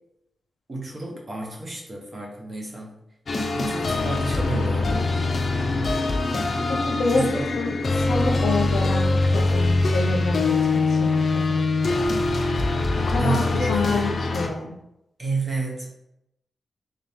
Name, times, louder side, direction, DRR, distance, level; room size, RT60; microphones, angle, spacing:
voice 1, 0.7-3.0 3.5-5.1 7.1-7.5 13.2-14.2 15.2-15.9, right 2 dB, 35° right, -2 dB, 1.0 m, -30 dB
sound 1, 3.3-14.5, left 3 dB, 50° left, 0.5 m, -23 dB
voice 2, 6.7-7.3 7.6-11.2 11.5-11.7 13.1-13.4 13.7-14.7, left 3 dB, 85° left, 2 dB, 0.8 m, -27 dB
3.5 x 2.9 x 3.5 m, 0.83 s
wide cardioid pair, 135°, 0 cm